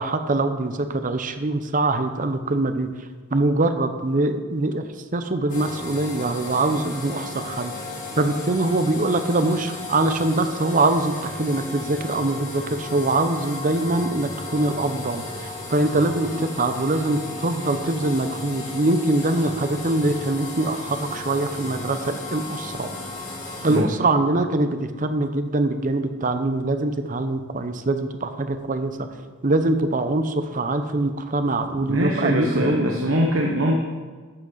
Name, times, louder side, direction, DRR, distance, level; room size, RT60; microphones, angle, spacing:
voice 1, 0.0-2.9 3.3-4.8 5.1-7.7 8.2-22.9 23.6-29.1 29.4-32.9, right 2 dB, 40° right, 8 dB, 0.7 m, -23 dB
sound 1, 5.5-23.8, left 3 dB, 40° left, 2.5 m, -35 dB
voice 2, 31.8-33.8, equal, 80° right, -1 dB, 1.0 m, -23 dB
11.5 x 7.9 x 4.0 m, 1.4 s
head